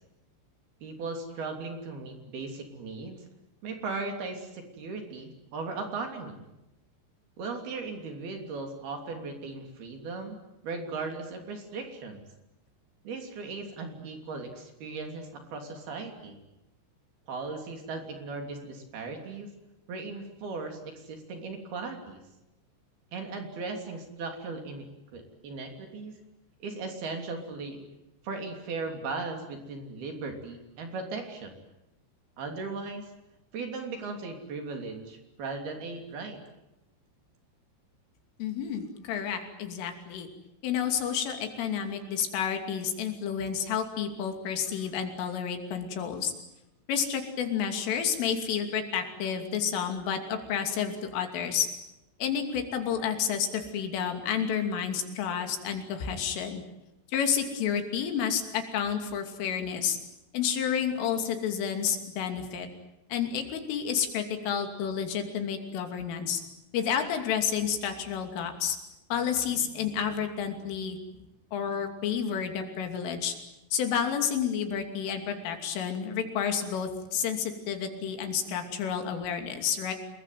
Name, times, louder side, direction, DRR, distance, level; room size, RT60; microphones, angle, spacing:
voice 1, 0.8-3.2 3.6-6.4 7.4-10.4 10.6-12.2 13.0-16.4 17.3-19.5 19.9-22.2 23.1-24.9 25.1-26.2 26.6-27.8 28.2-31.5 32.4-33.1 33.5-36.4, right 3 dB, 55° right, 4 dB, 4.8 m, -37 dB
voice 2, 38.4-40.3 40.6-46.3 46.9-51.7 52.2-56.6 57.1-60.0 60.3-62.7 63.1-66.4 66.7-68.8 69.1-71.0 71.5-73.4 73.7-79.9, left 8 dB, 80° left, 5 dB, 5.3 m, -30 dB
27.5 x 21.5 x 9.3 m, 0.94 s
omnidirectional pair, 5.6 m